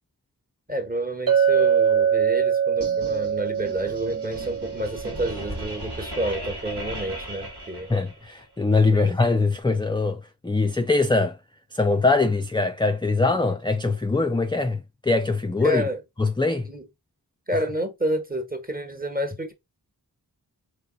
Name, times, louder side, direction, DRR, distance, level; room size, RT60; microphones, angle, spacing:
voice 1, 0.7-7.9 8.9-9.1 15.6-16.0 16.7-16.9 17.5-19.5, right 1 dB, 20° right, 1.3 m, -29 dB
Chink clink, 1.3-5.7, right 8 dB, 60° right, 0.8 m, -23 dB
sound 1, 2.8-8.4, equal, 80° right, 2.0 m, -37 dB
voice 2, 7.9-11.4 11.7-15.9 16.2-16.7, left 3 dB, 10° left, 0.4 m, -22 dB
4.0 x 3.1 x 3.9 m
wide cardioid pair, 60°, 40 cm